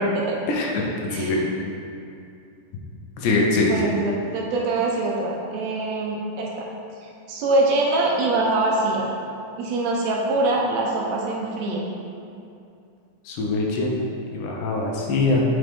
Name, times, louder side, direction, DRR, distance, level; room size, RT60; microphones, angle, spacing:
voice 1, 0.5-1.4 3.2-3.8 13.3-14.1 14.3-15.4, left 3 dB, 85° left, -1 dB, 2.3 m, -23 dB
voice 2, 3.7-6.5 7.3-9.1 9.6-11.8, right 2 dB, 75° right, -2 dB, 1.7 m, -23 dB
7.6 x 5.1 x 3.5 m, 2.5 s
omnidirectional pair, 3.5 m